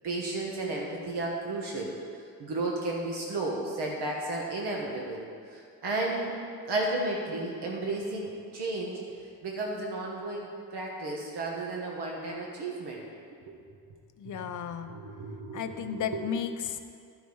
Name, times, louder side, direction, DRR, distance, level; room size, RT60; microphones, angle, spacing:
voice 1, 0.0-1.9 2.4-6.4 6.6-9.0 9.4-13.0 13.5-13.6 14.6-16.2, right 2 dB, 85° right, -1 dB, 1.3 m, -33 dB
voice 2, 14.2-14.9 15.5-16.8, left 8 dB, 50° left, 7 dB, 0.6 m, -33 dB
12.5 x 5.0 x 5.4 m, 2.3 s
wide cardioid pair, 160°, 39 cm